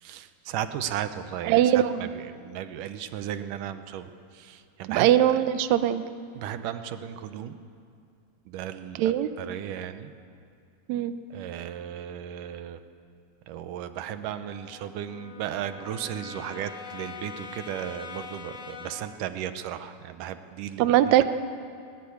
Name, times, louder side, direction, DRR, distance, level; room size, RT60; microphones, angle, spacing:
voice 1, 0.0-5.3 6.3-7.6 8.5-10.1 11.3-12.8 13.5-21.2, right 10 dB, 75° right, 10 dB, 2.2 m, -35 dB
voice 2, 1.4-2.1 4.9-6.0 9.0-9.3 10.9-11.1 20.8-21.2, right 12 dB, 90° right, 11 dB, 1.6 m, -21 dB
Brass instrument, 13.7-19.2, left 5 dB, 75° left, 0.7 m, -43 dB
21.0 x 20.5 x 8.6 m, 2.3 s
omnidirectional pair, 4.3 m